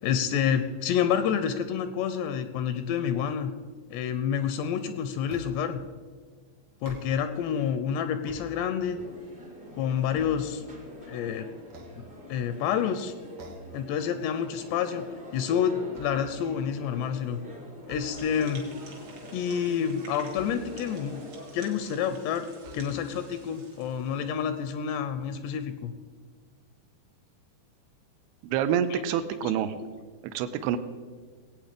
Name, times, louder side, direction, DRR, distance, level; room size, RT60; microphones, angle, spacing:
voice 1, 0.0-3.5 3.9-5.8 6.8-9.0 9.7-10.6 11.0-11.5 12.3-13.1 13.7-15.1 15.3-17.4 17.9-18.7 19.3-21.2 21.5-22.5 22.7-25.9 28.9-29.0, left 8 dB, 80° left, 10 dB, 2.6 m, -28 dB
sound 1, 5.3-5.8 6.7-7.5 8.0-9.1 9.6-11.1 11.6-12.6 13.4-13.9 14.2-14.5 14.9-16.6 17.8-18.6 20.3-21.1 21.8-21.9 22.6-23.3, equal, 70° right, 1.3 m, -48 dB
sound 2, 8.9-21.7, left 1 dB, 25° right, 1.1 m, -45 dB
sound 3, 18.1-24.9, right 2 dB, 45° right, 1.6 m, -51 dB
voice 2, 28.4-29.7 30.2-30.8, right 9 dB, 85° right, 10 dB, 2.4 m, -27 dB
18.5 x 8.7 x 5.0 m, 1.5 s
omnidirectional pair, 5.1 m